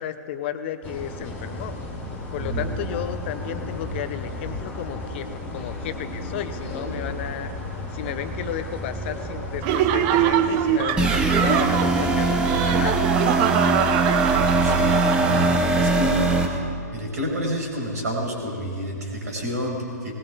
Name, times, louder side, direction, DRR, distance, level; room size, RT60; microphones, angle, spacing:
voice 1, 0.0-1.8 2.3-7.5 7.9-13.9, left 10 dB, 35° left, 11 dB, 0.6 m, -33 dB
sound 1, 0.8-12.8, left 1 dB, 15° left, 2.5 m, -34 dB
voice 2, 2.4-2.7 14.4-16.6 16.9-20.1, equal, 65° right, 0 dB, 4.4 m, -29 dB
Laughter, 9.6-16.0, right 10 dB, 30° right, 0.5 m, -24 dB
sound 2, 11.0-16.5, right 2 dB, 10° right, 1.0 m, -21 dB
19.5 x 19.5 x 2.5 m, 2.2 s
figure-of-eight pair, 115°, 10 cm